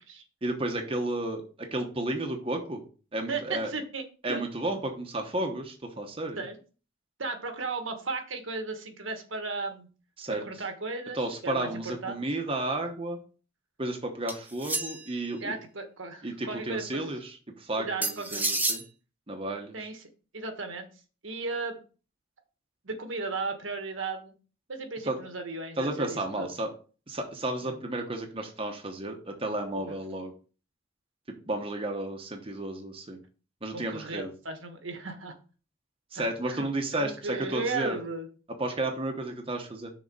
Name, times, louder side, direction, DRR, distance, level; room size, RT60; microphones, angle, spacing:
voice 1, 0.4-2.8 3.1-3.7 4.2-6.4 10.2-10.4 11.1-13.2 13.8-15.5 16.2-18.8 19.3-19.9 25.0-25.2 25.8-26.7 27.1-30.3 31.5-33.2 33.6-34.3 36.1-38.0 38.6-39.9, right 2 dB, 25° right, 3 dB, 0.9 m, -32 dB
voice 2, 3.3-4.4 6.4-6.6 7.2-9.9 10.3-12.2 15.4-17.1 17.8-18.5 19.7-20.0 20.3-20.9 21.2-21.8 22.8-24.3 24.7-26.5 27.6-27.8 29.9-30.0 33.7-35.4 36.1-36.7 36.9-38.3, right 3 dB, 75° right, 6 dB, 1.3 m, -35 dB
sound 1, 14.3-15.2 18.0-18.8, right 2 dB, 10° right, 0.6 m, -30 dB
6.4 x 4.1 x 5.4 m, 0.36 s
head